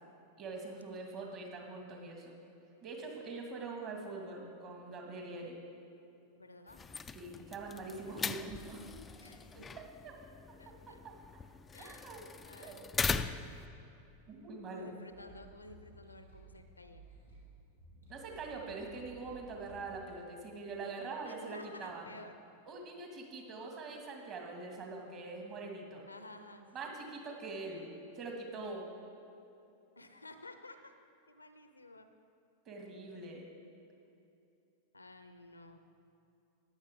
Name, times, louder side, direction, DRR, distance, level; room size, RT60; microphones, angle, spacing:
voice 1, 0.4-2.3 2.8-5.5 7.1-8.8 10.0-10.1 11.0-11.1 11.8-12.2 12.6-12.9 13.2-13.3 14.3-14.9 18.1-22.1 22.7-26.0 26.7-28.8 32.7-33.5, right 3 dB, 35° right, 1 dB, 2.1 m, -44 dB
voice 2, 1.1-1.6 6.3-6.8 9.2-9.7 10.6-11.0 11.7-12.1 12.5-12.9 14.7-17.0 21.2-22.3 26.1-26.9 30.0-30.9 31.3-32.1 34.9-35.8, left 2 dB, 80° left, 9 dB, 0.7 m, -53 dB
sound 1, 6.7-13.7, left 5 dB, 15° left, 0.4 m, -40 dB
sound 2, 15.1-20.2, right 1 dB, 85° right, 2.8 m, -57 dB
14.5 x 10.0 x 3.7 m, 2.7 s
figure-of-eight pair, 90°, 0 cm